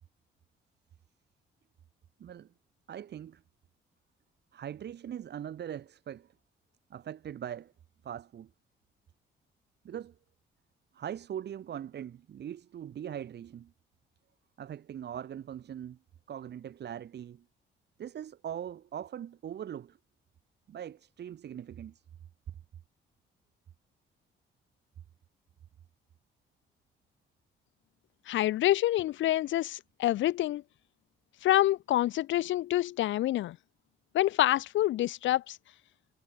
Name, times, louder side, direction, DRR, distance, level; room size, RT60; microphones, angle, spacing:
voice 1, 2.9-3.4 4.5-6.3 6.9-7.7 8.0-8.5 9.8-10.1 10.9-13.7 14.6-16.0 16.3-17.4 18.0-20.0 20.7-22.0, right 9 dB, 60° right, 1.4 m, -41 dB
voice 2, 28.3-30.6 31.4-33.6 34.1-35.6, left 14 dB, 70° left, 0.6 m, -27 dB
cardioid pair, 90°, 20 cm